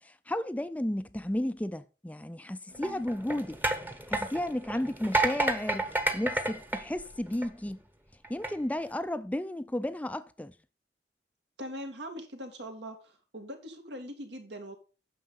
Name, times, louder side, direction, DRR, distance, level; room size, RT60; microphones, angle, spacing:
voice 1, 0.0-3.6 4.1-7.8 8.3-10.5, left 1 dB, 10° left, 0.4 m, -33 dB
sound 1, 2.7-7.7 8.2-8.5, right 2 dB, 10° right, 0.9 m, -31 dB
voice 2, 2.7-3.1 11.6-14.8, equal, 80° right, 2.5 m, -42 dB
9.3 x 6.6 x 5.5 m
head